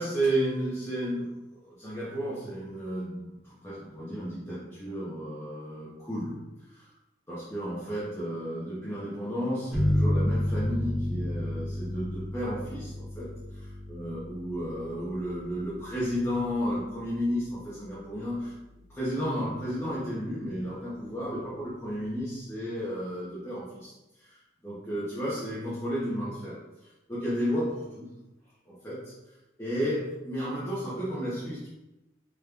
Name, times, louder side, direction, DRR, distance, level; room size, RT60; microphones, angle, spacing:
voice 1, 0.0-6.9 7.3-18.5 18.9-23.9 24.2-28.1 28.7-29.3 29.6-31.7, equal, 15° left, -10 dB, 0.9 m, -33 dB
sound 1, 9.7-19.0, left 1 dB, 5° right, 1.5 m, -32 dB
5.1 x 3.0 x 2.4 m, 0.98 s
head